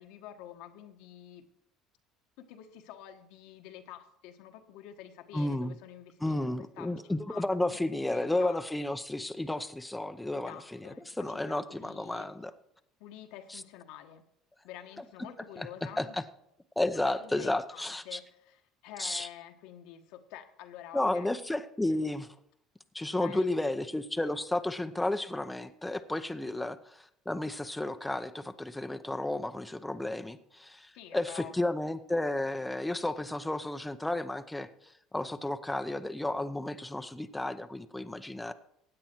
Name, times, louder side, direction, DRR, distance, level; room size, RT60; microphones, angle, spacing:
voice 1, 0.0-1.5 2.4-6.9 7.3-7.8 8.0-8.6 10.3-12.3 13.0-14.2 14.6-16.2 17.1-21.3 23.2-23.8 26.4-26.7 30.9-31.5, left 11 dB, 75° left, 6 dB, 1.3 m, -48 dB
voice 2, 5.3-5.8 6.2-12.5 13.5-13.6 15.6-15.7 16.0-16.2 16.8-18.2 19.0-19.3 20.9-22.3 22.9-38.5, left 1 dB, 5° left, 8 dB, 0.7 m, -32 dB
16.0 x 9.0 x 4.6 m, 0.75 s
supercardioid pair, 95°, 0 cm